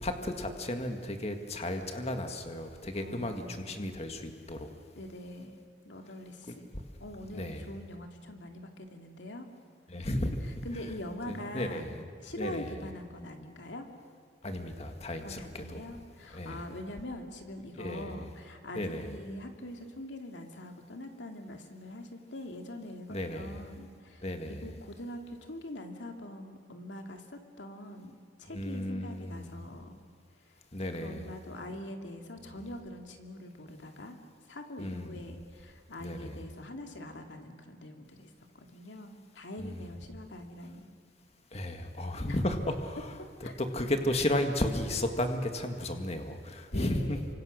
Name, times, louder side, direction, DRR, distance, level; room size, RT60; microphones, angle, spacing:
voice 1, 0.0-4.7 7.3-7.7 9.9-10.4 11.3-12.0 12.4-12.9 14.4-15.8 16.3-16.6 17.8-18.3 18.7-19.2 23.1-23.6 24.2-24.7 28.5-29.5 30.7-31.3 34.8-35.3 36.0-36.4 39.6-39.8 41.5-47.2, left 1 dB, 35° left, 6 dB, 1.9 m, -34 dB
voice 2, 2.9-3.9 4.9-5.6 5.8-6.7 7.0-9.5 10.4-11.9 12.2-13.9 15.2-30.0 30.4-30.6 31.0-34.2 34.5-40.9 42.3-42.4 43.4-43.5 46.7-47.3, left 1 dB, 75° left, 4 dB, 2.6 m, -43 dB
29.0 x 25.0 x 6.6 m, 2.1 s
head